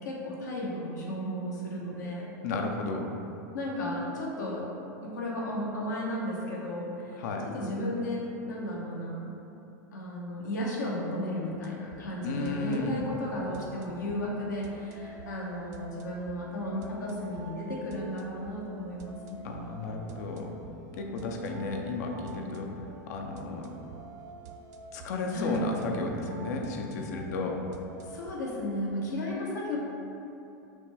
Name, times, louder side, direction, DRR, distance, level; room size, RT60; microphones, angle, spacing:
voice 1, 0.0-2.3 3.5-4.7 5.0-7.2 7.5-9.3 9.9-19.5 25.3-25.7 28.0-29.8, left 1 dB, 90° left, -3 dB, 1.0 m, -34 dB
voice 2, 2.4-3.1 7.2-7.5 12.2-13.0 19.4-20.5 21.0-22.7 23.1-23.7 24.9-27.6, left 3 dB, 70° left, 2 dB, 0.5 m, -33 dB
sound 1, 11.5-28.3, right 4 dB, 75° right, 0.4 m, -48 dB
6.1 x 2.2 x 3.3 m, 2.8 s
hypercardioid pair, 115°, 9 cm